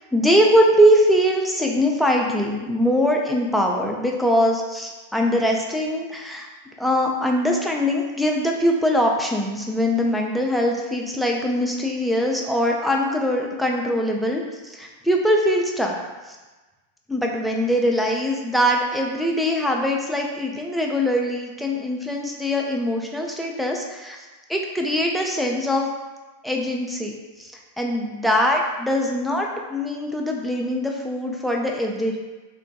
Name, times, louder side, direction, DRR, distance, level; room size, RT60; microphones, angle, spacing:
voice 1, 0.0-6.5 6.8-16.0 16.3-16.4 17.1-25.9 26.4-32.2, equal, ahead, -1 dB, 0.4 m, -22 dB
3.3 x 2.1 x 2.6 m, 1.2 s
figure-of-eight pair, 90°, 0 cm